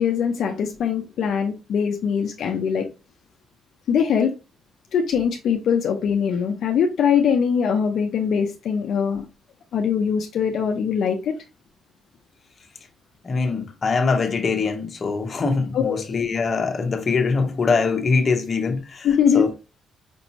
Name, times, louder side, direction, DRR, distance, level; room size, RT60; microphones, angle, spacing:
voice 1, 0.0-2.9 3.9-4.3 4.9-9.2 9.7-11.3 15.7-16.0 19.0-19.5, left 7 dB, 70° left, 0.6 m, -22 dB
voice 2, 13.2-19.1 19.3-19.5, left 4 dB, 40° left, 1.0 m, -23 dB
5.3 x 2.6 x 2.9 m
cardioid pair, 90°, 0 cm